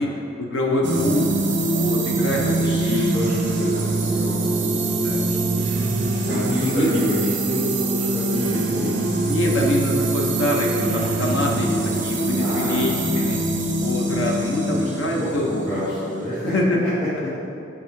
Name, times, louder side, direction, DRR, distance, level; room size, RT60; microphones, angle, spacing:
voice 1, 0.0-1.3 1.7-3.1 5.0-5.2 6.5-6.9 8.7-8.8 9.3-13.4 13.8-15.5 16.4-16.8, left 1 dB, 85° left, -1 dB, 0.8 m, -24 dB
sound 1, 0.8-16.6, right 2 dB, 65° right, 0.8 m, -24 dB
voice 2, 2.6-5.6 6.2-8.9 9.5-9.6 12.4-12.8 14.7-14.9 15.2-16.5 17.2-17.3, left 1 dB, 15° left, -13 dB, 1.4 m, -29 dB
6.0 x 4.9 x 4.6 m, 2.6 s
head